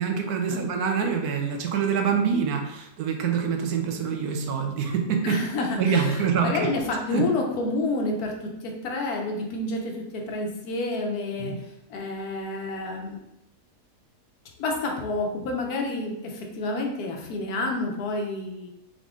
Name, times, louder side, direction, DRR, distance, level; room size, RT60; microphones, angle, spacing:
voice 1, 0.0-5.4 5.8-6.7 7.1-7.2 11.4-11.6, right 6 dB, 75° right, 3 dB, 1.2 m, -25 dB
voice 2, 5.2-11.6 11.9-13.2 14.6-18.7, left 2 dB, 75° left, 1 dB, 1.2 m, -29 dB
3.8 x 3.6 x 3.6 m, 0.86 s
omnidirectional pair, 1.7 m